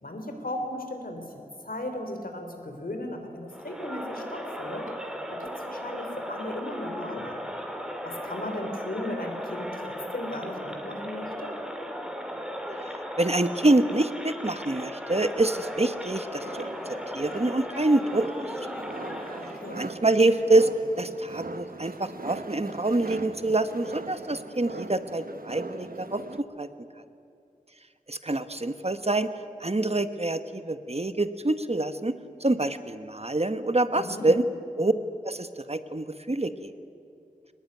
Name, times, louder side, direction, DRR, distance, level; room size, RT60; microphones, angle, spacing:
voice 1, 0.0-4.9 5.3-7.4 8.0-11.5 19.4-19.8 33.9-34.3, left 1 dB, 90° left, 5 dB, 3.4 m, -36 dB
Crowd, 3.5-19.8, equal, 5° right, 2.9 m, -36 dB
voice 2, 13.2-16.7 17.1-18.7 19.7-20.7 21.0-26.7 28.1-29.3 29.6-32.1 32.4-34.4 34.8-34.9 35.2-36.7, right 2 dB, 45° right, 10 dB, 1.2 m, -26 dB
sound 1, 16.4-26.4, right 3 dB, 85° right, 1.1 m, -40 dB
23.0 x 19.5 x 9.6 m, 2.6 s
wide cardioid pair, 45°, 15 cm